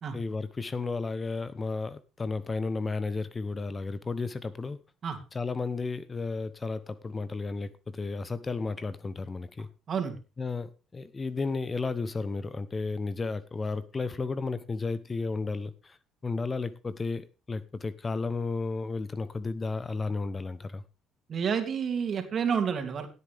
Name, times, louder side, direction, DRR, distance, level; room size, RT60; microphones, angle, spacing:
voice 1, 0.1-4.8 5.3-9.7 10.4-16.0 16.2-20.8, left 4 dB, 30° left, 0.9 m, -33 dB
voice 2, 21.3-23.1, right 7 dB, 50° right, 2.8 m, -29 dB
17.0 x 8.4 x 3.5 m
supercardioid pair, 70°, 0 cm